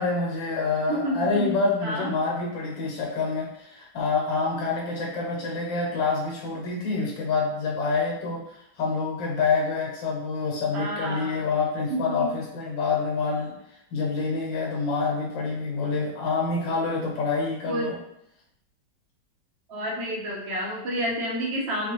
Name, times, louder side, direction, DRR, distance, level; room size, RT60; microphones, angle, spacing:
voice 1, 0.0-13.5 13.9-18.0, left 4 dB, 85° left, -1 dB, 1.5 m, -27 dB
voice 2, 0.9-1.5 1.8-2.1 10.7-11.5 11.9-12.3 17.7-18.0 19.7-21.9, equal, 45° right, -3 dB, 1.0 m, -29 dB
4.3 x 2.4 x 3.0 m, 0.78 s
omnidirectional pair, 2.0 m